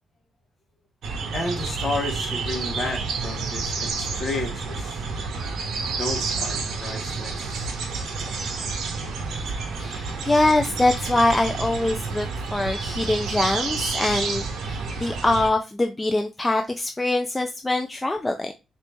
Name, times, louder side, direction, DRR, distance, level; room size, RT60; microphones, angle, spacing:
sound 1, 1.0-15.5, right 4 dB, 75° right, 1.0 m, -29 dB
voice 1, 1.3-5.0 6.0-7.7 8.3-8.4, left 2 dB, 40° left, 1.4 m, -32 dB
voice 2, 9.8-18.5, left 2 dB, 15° left, 0.4 m, -23 dB
4.1 x 2.7 x 3.4 m
cardioid pair, 130°, 0 cm